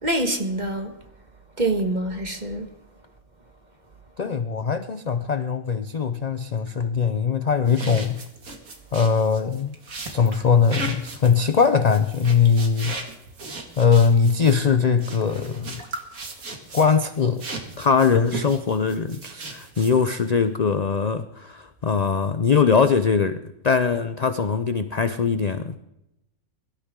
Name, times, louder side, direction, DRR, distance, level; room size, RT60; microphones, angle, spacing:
voice 1, 0.0-0.9 1.6-2.7, right 1 dB, 30° right, 1.6 m, -25 dB
voice 2, 4.2-8.2 8.9-9.8 10.1-13.0 13.8-15.8 16.7-17.5 17.8-25.8, left 6 dB, 50° left, 0.5 m, -21 dB
sound 1, 7.7-17.0 17.4-20.2, right 3 dB, 70° right, 2.5 m, -36 dB
22.5 x 13.0 x 3.8 m
omnidirectional pair, 1.5 m